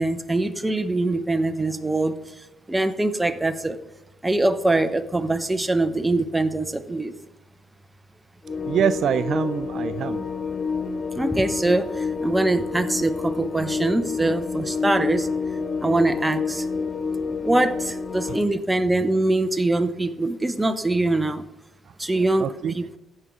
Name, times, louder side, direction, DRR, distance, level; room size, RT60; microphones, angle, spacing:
voice 1, 0.0-2.2 2.7-3.8 4.2-7.1 11.1-15.3 15.8-16.7 17.4-21.4 22.0-22.5 22.7-23.0, right 2 dB, 15° right, 10 dB, 0.8 m, -23 dB
sound 1, 8.5-18.4, left 5 dB, 35° left, 0.7 m, -28 dB
voice 2, 8.5-10.2 18.2-18.4 22.4-22.7, right 8 dB, 65° right, 14 dB, 0.4 m, -25 dB
15.0 x 5.4 x 4.9 m, 0.95 s
cardioid pair, 90°, 0 cm